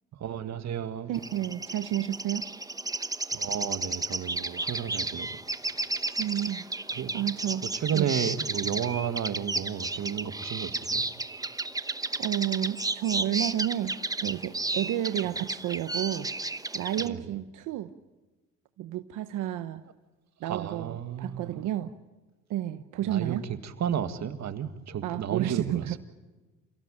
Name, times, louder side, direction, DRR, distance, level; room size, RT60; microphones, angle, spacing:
voice 1, 0.2-1.1 3.3-5.4 6.9-7.2 7.7-11.1 17.0-17.3 20.4-21.6 23.0-26.0, right 9 dB, 65° right, 2.0 m, -32 dB
sound 1, 1.1-17.1, right 2 dB, 10° right, 1.0 m, -33 dB
voice 2, 1.1-2.5 6.2-6.6 7.1-7.6 7.9-8.1 12.2-13.9 14.2-16.3 16.7-17.9 18.8-19.8 20.4-21.9 22.5-23.4 25.0-26.0, right 12 dB, 90° right, 1.0 m, -31 dB
28.5 x 17.0 x 8.9 m
cardioid pair, 90°, 30 cm